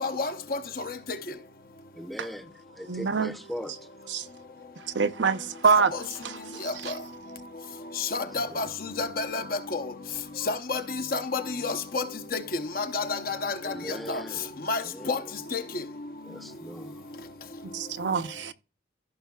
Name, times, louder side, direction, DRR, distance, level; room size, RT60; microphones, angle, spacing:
voice 1, 0.0-0.6 6.6-6.9 8.0-9.8 10.5-12.0 12.3-14.2 14.7-15.2 15.5-15.6, left 3 dB, 50° left, 0.8 m, -30 dB
voice 2, 1.9-3.7 8.1-8.6 13.6-14.5 14.8-15.2 16.3-17.0, equal, ahead, 0.5 m, -40 dB
voice 3, 2.9-3.4 4.1-4.2 4.9-5.9 6.2-6.4 6.8-6.9 17.7-18.5, right 5 dB, 75° right, 0.7 m, -25 dB
15.0 x 5.6 x 2.3 m
head